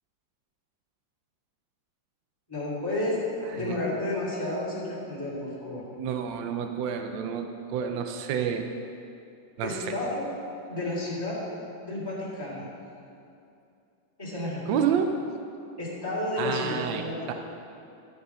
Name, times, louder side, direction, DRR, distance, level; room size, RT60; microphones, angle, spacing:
voice 1, 2.5-3.2 3.5-5.8 9.6-10.2 10.7-11.4 11.8-12.7 14.2-14.6 15.8-17.2, left 2 dB, 10° left, -8 dB, 2.6 m, -31 dB
voice 2, 6.0-8.7 9.6-10.0 14.7-15.1 16.4-17.3, right 8 dB, 80° right, 5 dB, 1.3 m, -29 dB
12.5 x 6.9 x 5.5 m, 2.6 s
omnidirectional pair, 2.0 m